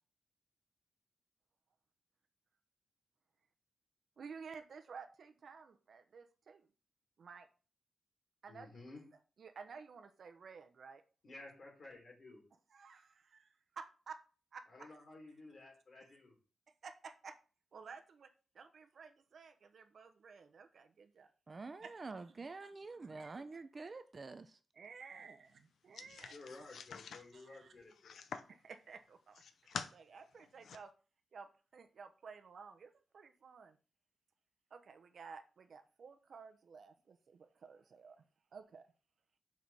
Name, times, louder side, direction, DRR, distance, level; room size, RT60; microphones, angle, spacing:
voice 1, 4.2-6.7 7.2-7.5 8.4-8.8 9.4-11.0 12.7-14.2 14.5-15.0 16.8-17.4 17.7-21.3 21.8-21.9 23.0-23.5 24.7-26.4 27.3-27.7 28.5-29.4 29.7-30.9 31.3-33.8 34.7-38.2 38.5-38.9, right 5 dB, 60° right, 0.9 m, -53 dB
voice 2, 8.5-9.0 11.2-12.4 14.7-16.3 25.9-28.3, left 2 dB, 50° left, 3.6 m, -54 dB
voice 3, 21.5-24.6, right 3 dB, 35° right, 0.5 m, -47 dB
sound 1, 25.9-28.6 29.1-29.9 30.4-30.8, left 6 dB, 85° left, 0.7 m, -47 dB
5.9 x 5.0 x 5.5 m
wide cardioid pair, 140°, 0 cm